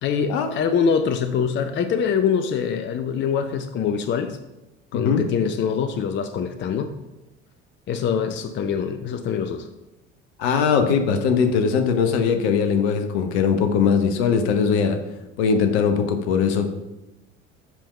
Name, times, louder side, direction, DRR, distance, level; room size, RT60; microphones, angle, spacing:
voice 1, 0.0-4.4 4.9-6.9 7.9-9.7, left 7 dB, 30° left, 9 dB, 0.6 m, -24 dB
voice 2, 10.4-15.0 15.4-16.7, left 6 dB, 60° left, 7 dB, 1.0 m, -20 dB
7.4 x 5.3 x 5.4 m, 0.98 s
figure-of-eight pair, 55°, 36 cm